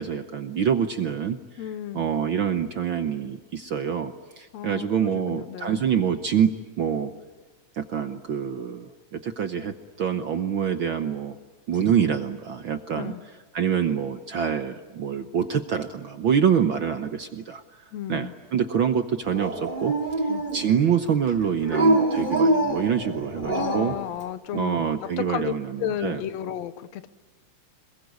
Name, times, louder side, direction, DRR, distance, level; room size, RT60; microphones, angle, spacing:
voice 1, 0.0-1.4 1.9-7.1 7.8-11.3 11.7-13.1 13.5-17.6 18.1-19.9 20.5-23.9 24.5-26.2, right 8 dB, 65° right, 8 dB, 1.3 m, -26 dB
voice 2, 1.6-2.1 4.5-5.8 12.9-13.2 17.9-18.3 20.3-20.4 23.4-27.1, left 11 dB, 70° left, 13 dB, 2.2 m, -33 dB
Dog, 19.3-20.8 21.7-24.0, right 1 dB, 15° right, 2.5 m, -24 dB
27.0 x 22.0 x 9.5 m, 1.3 s
omnidirectional pair, 3.4 m